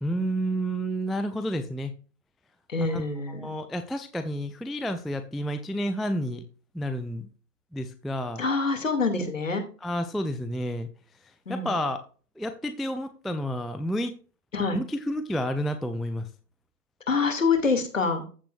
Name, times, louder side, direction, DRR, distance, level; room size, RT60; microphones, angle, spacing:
voice 1, 0.0-1.9 2.8-3.0 3.3-6.4 6.7-7.3 7.7-8.4 9.8-10.9 11.5-12.0 12.4-14.1 14.7-16.3, equal, ahead, 9 dB, 0.4 m, -30 dB
voice 2, 2.7-3.6 8.4-9.6 11.5-11.7 14.5-14.8 17.1-18.2, left 4 dB, 55° left, 6 dB, 2.4 m, -26 dB
14.5 x 5.6 x 2.5 m, 0.37 s
hypercardioid pair, 175°, 47 cm